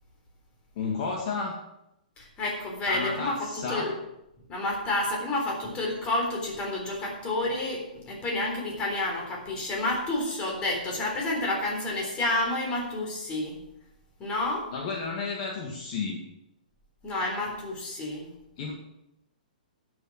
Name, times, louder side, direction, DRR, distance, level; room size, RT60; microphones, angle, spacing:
voice 1, 0.8-1.5 2.9-3.9 14.7-16.2 18.6-18.7, left 4 dB, 45° left, -1 dB, 2.1 m, -32 dB
voice 2, 2.2-3.9 4.5-13.5 14.2-14.7 17.0-18.3, left 2 dB, 20° left, 0 dB, 3.8 m, -30 dB
11.5 x 7.1 x 6.4 m, 0.85 s
hypercardioid pair, 145°, 5 cm